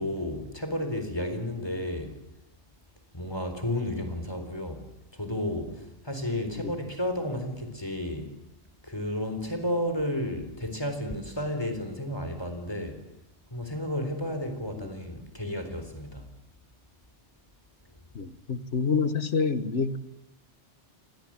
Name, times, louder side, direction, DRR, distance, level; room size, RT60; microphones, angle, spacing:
voice 1, 0.0-2.1 3.1-4.8 5.1-8.3 8.8-13.0 13.5-16.3, left 1 dB, 20° left, 7 dB, 4.0 m, -32 dB
voice 2, 18.1-20.0, left 5 dB, 80° left, 11 dB, 1.7 m, -27 dB
28.5 x 25.5 x 7.6 m, 0.86 s
omnidirectional pair, 1.2 m